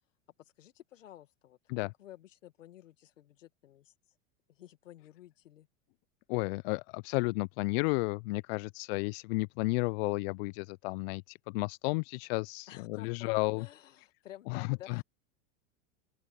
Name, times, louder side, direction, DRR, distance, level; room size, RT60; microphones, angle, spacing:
voice 1, 0.4-3.9 4.5-5.7 12.7-15.0, left 12 dB, 80° left, 2.1 m, -53 dB
voice 2, 6.3-13.7 14.5-15.0, left 27 dB, 55° left, 0.5 m, -32 dB
open air
hypercardioid pair, 95°, 38 cm